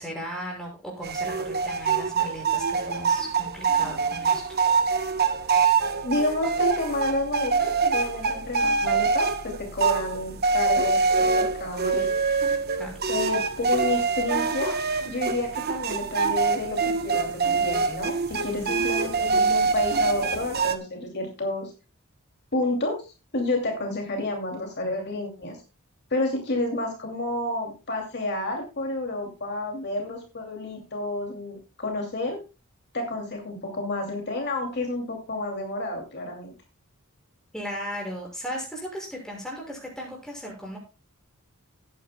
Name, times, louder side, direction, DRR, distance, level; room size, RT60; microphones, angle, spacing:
voice 1, 0.0-4.6 12.8-12.9 18.4-18.7 37.5-40.8, equal, 5° left, -1 dB, 6.1 m, -36 dB
sound 1, 1.0-20.8, right 5 dB, 45° right, 1.0 m, -25 dB
voice 2, 6.0-11.0 11.4-12.1 13.1-14.7 15.1-21.7 22.5-23.0 23.3-25.6 26.1-32.4 32.9-36.5, left 2 dB, 50° left, 2 dB, 2.6 m, -30 dB
18.0 x 9.5 x 2.2 m, 0.30 s
head